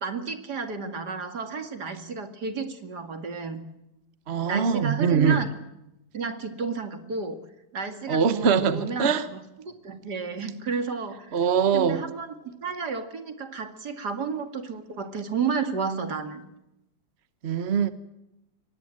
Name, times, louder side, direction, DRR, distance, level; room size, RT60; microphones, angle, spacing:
voice 1, 0.0-3.6 4.5-5.6 6.1-7.4 7.7-11.4 11.7-16.4, right 5 dB, 75° right, 2.8 m, -32 dB
voice 2, 4.3-5.4 8.1-9.2 11.3-12.0 17.4-17.9, right 6 dB, 45° right, 1.3 m, -22 dB
24.0 x 19.0 x 7.8 m
omnidirectional pair, 1.8 m